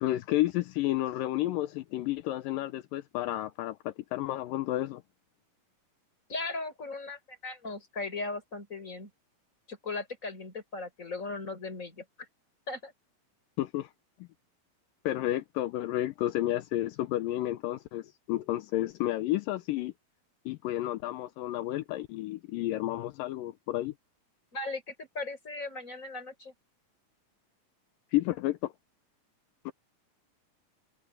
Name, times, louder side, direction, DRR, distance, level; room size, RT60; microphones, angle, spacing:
voice 1, 0.0-5.0 13.6-13.9 15.0-19.9 20.5-23.9 28.1-28.7 29.7-29.8, left 15 dB, 80° left, 2.4 m, -31 dB
voice 2, 6.3-9.1 9.7-12.0 12.7-12.9 24.5-26.5, left 3 dB, 20° left, 5.7 m, -38 dB
omnidirectional pair, 4.0 m